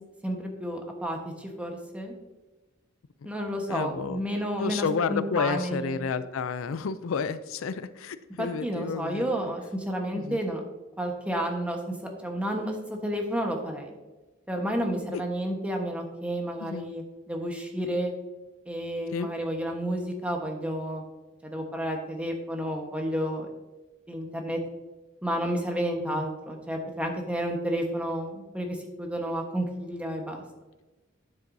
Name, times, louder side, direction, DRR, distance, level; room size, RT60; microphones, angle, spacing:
voice 1, 0.2-2.1 3.2-6.1 8.4-10.6 11.0-11.9 12.2-13.9 14.5-18.1 18.7-21.0 21.4-23.5 24.1-24.6 25.2-30.4, equal, 5° right, 2 dB, 1.1 m, -31 dB
voice 2, 3.7-4.2 4.6-9.3 10.1-10.4 15.1-15.2 16.6-16.9 19.1-19.3 26.0-26.2, left 5 dB, 80° left, 13 dB, 0.4 m, -31 dB
9.5 x 7.7 x 2.6 m, 1.1 s
head